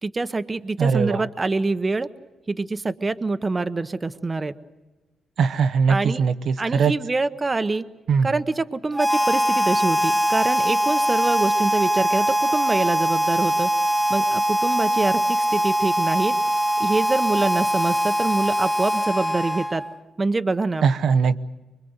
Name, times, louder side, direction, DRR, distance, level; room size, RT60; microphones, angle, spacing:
voice 1, 0.0-2.1 2.5-4.5 5.9-6.2 6.6-7.8 8.2-13.7 14.1-16.3 16.8-19.8 20.2-20.8, right 3 dB, 25° right, 11 dB, 0.9 m, -25 dB
voice 2, 0.8-1.2 5.4-6.9 8.1-8.3 20.8-21.4, right 6 dB, 70° right, 9 dB, 0.9 m, -20 dB
Harmonica, 8.9-20.0, right 1 dB, 5° left, 1.1 m, -22 dB
25.0 x 22.0 x 8.0 m, 1.1 s
cardioid pair, 85°, 0 cm